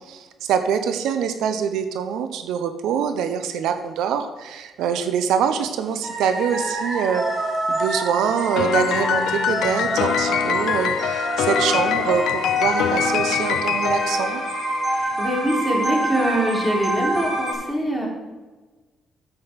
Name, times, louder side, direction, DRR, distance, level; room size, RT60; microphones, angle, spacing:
voice 1, 0.1-7.2 7.7-14.4, right 7 dB, 85° right, 8 dB, 0.8 m, -24 dB
sound 1, 6.0-17.5, right 1 dB, 25° right, 3.1 m, -26 dB
Piano, 8.6-15.1, left 10 dB, 80° left, 0.4 m, -24 dB
voice 2, 14.9-18.1, right 1 dB, ahead, -2 dB, 3.5 m, -24 dB
9.0 x 7.8 x 5.2 m, 1.2 s
cardioid pair, 90°, 0 cm